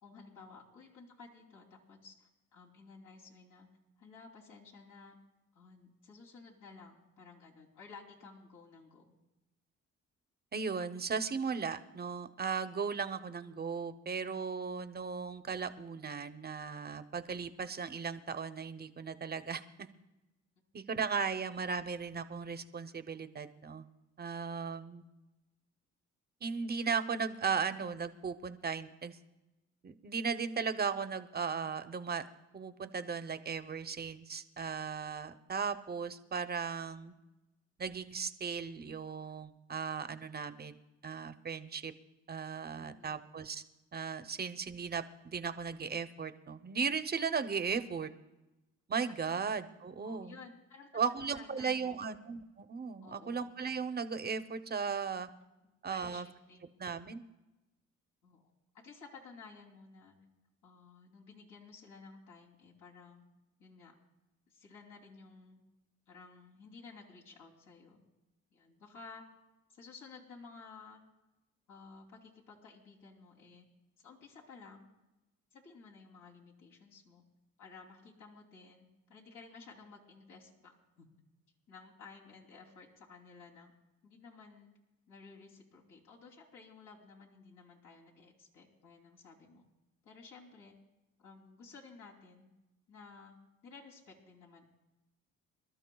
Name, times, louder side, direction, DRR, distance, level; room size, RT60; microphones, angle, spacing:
voice 1, 0.0-3.7 4.0-5.2 5.5-9.1 42.8-43.2 49.3-49.4 50.0-50.9 51.2-52.1 53.0-53.5 55.6-56.7 58.2-58.4 58.7-60.1 60.6-63.3 63.6-63.9 64.5-65.6 66.1-68.0 68.5-69.2 69.7-71.0 71.7-73.7 74.0-74.9 75.5-77.2 77.6-81.1 81.7-83.7 84.0-84.7 85.1-89.6 90.0-90.7 91.2-92.5 92.9-93.4 93.6-94.7, left 4 dB, 75° left, -2 dB, 3.0 m, -54 dB
voice 2, 10.5-19.6 20.7-23.9 24.2-25.0 26.4-29.2 29.8-32.2 32.5-37.1 37.8-40.8 41.0-41.9 42.3-43.6 43.9-48.1 48.9-50.3 50.9-55.3 55.8-56.3 56.8-57.2, right 6 dB, 30° right, 10 dB, 0.7 m, -36 dB
27.5 x 12.5 x 2.3 m, 1.0 s
cardioid pair, 90°, 30 cm